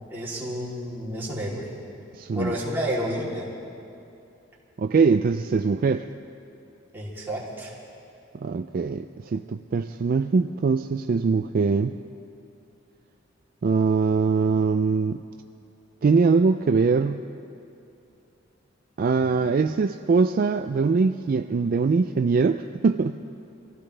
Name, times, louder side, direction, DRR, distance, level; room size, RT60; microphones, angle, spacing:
voice 1, 0.1-1.7 2.3-3.5 6.9-7.8, equal, 10° right, -7 dB, 3.1 m, -30 dB
voice 2, 2.2-2.6 4.8-6.1 8.4-12.0 13.6-15.2 16.0-17.2 19.0-23.2, right 4 dB, 45° right, 8 dB, 0.3 m, -22 dB
24.5 x 15.5 x 3.3 m, 2.6 s
head